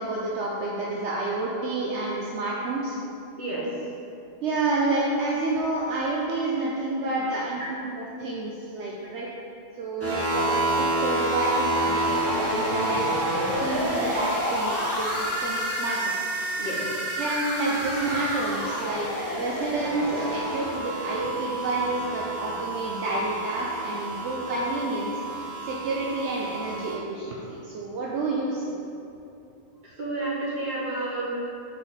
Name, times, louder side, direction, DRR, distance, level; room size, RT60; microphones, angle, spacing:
voice 1, 0.0-3.0 4.4-9.3 9.8-13.0 13.3-16.1 16.4-16.6 17.2-25.4 25.7-28.6, right 2 dB, 75° right, -4 dB, 1.0 m, -29 dB
sound 1, 10.0-26.9, right 1 dB, 15° right, 1.0 m, -29 dB
voice 2, 30.0-31.3, right 2 dB, 40° right, -7 dB, 1.6 m, -30 dB
6.3 x 4.7 x 4.0 m, 2.7 s
omnidirectional pair, 1.2 m